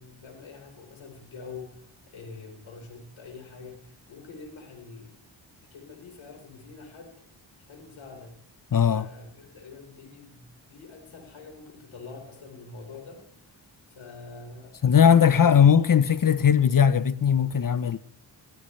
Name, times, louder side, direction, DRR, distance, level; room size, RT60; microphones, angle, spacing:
voice 1, 0.0-5.1 5.6-7.1 7.6-8.4 8.8-13.6 13.9-15.6, left 4 dB, 85° left, 4.4 m, -45 dB
voice 2, 8.7-9.1 14.8-18.0, left 8 dB, 45° left, 0.8 m, -19 dB
17.0 x 17.0 x 3.3 m
cardioid pair, 60°, 47 cm